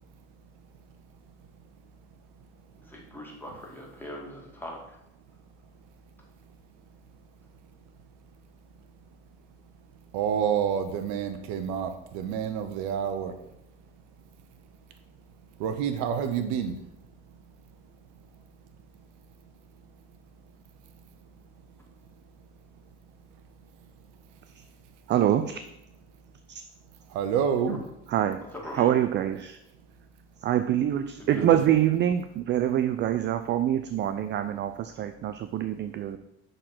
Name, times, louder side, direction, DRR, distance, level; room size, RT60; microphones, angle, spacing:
voice 1, 2.8-5.0 27.7-27.8 28.5-28.9 31.2-31.4, left 1 dB, 5° left, -2 dB, 2.2 m, -41 dB
voice 2, 10.1-13.4 15.6-16.8 27.1-27.8 31.3-31.8, right 8 dB, 70° right, 9 dB, 0.8 m, -28 dB
voice 3, 25.1-25.6 26.5-26.6 28.1-28.4 28.7-29.6 30.4-36.2, right 11 dB, 40° right, 10 dB, 0.4 m, -25 dB
6.6 x 3.9 x 6.0 m, 0.84 s
supercardioid pair, 95°, 30 cm